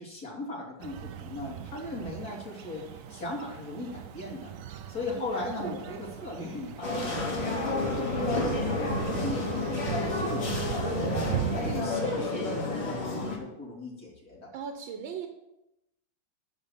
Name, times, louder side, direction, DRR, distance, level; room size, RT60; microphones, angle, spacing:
voice 1, 0.0-4.5 4.9-14.5, left 2 dB, 50° left, -3 dB, 3.3 m, -38 dB
sound 1, 0.8-11.8, right 9 dB, 70° right, 0.8 m, -38 dB
sound 2, 6.8-13.4, left 3 dB, 75° left, 3.6 m, -30 dB
voice 2, 14.5-15.3, right 8 dB, 85° right, 5 dB, 1.7 m, -38 dB
13.0 x 5.4 x 7.3 m, 0.89 s
omnidirectional pair, 2.0 m